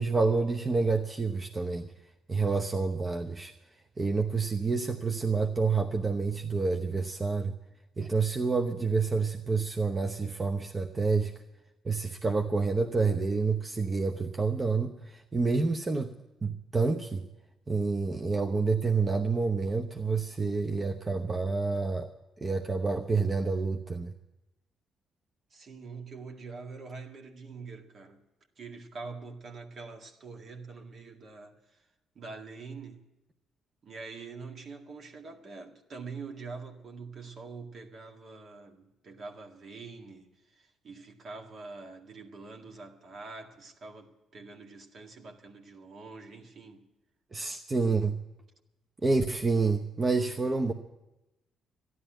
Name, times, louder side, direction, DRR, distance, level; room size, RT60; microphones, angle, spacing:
voice 1, 0.0-1.9 2.3-3.5 4.0-7.5 8.0-11.3 11.8-16.1 16.4-17.3 17.7-22.1 22.4-24.1 47.3-48.2 49.0-50.7, right 4 dB, 30° right, 0.9 m, -28 dB
voice 2, 25.5-28.2 28.6-31.9 32.2-33.0 33.8-46.9, right 4 dB, 55° right, 1.9 m, -45 dB
13.0 x 11.0 x 9.0 m
hypercardioid pair, 55°, 0 cm